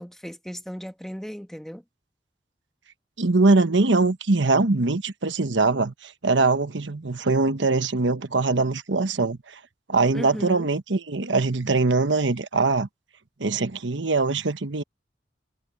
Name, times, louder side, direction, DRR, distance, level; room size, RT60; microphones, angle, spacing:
voice 1, 0.0-1.8 10.1-10.7, equal, ahead, 1.5 m, -36 dB
voice 2, 3.2-9.6 9.9-12.9 13.4-14.8, right 3 dB, 80° right, 1.2 m, -22 dB
head